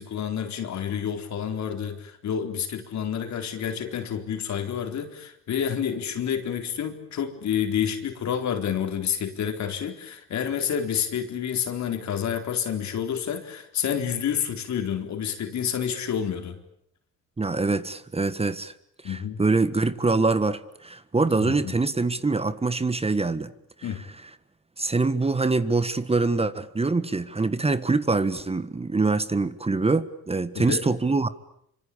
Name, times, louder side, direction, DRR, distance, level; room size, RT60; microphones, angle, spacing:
voice 1, 0.0-16.6 19.0-19.4 21.4-21.8 23.8-24.0 30.5-30.8, left 8 dB, 65° left, 6 dB, 4.1 m, -29 dB
voice 2, 17.4-18.7 19.0-23.5 24.8-31.3, right 3 dB, 20° right, 13 dB, 1.5 m, -24 dB
26.5 x 25.5 x 8.7 m, 0.72 s
cardioid pair, 90°, 30 cm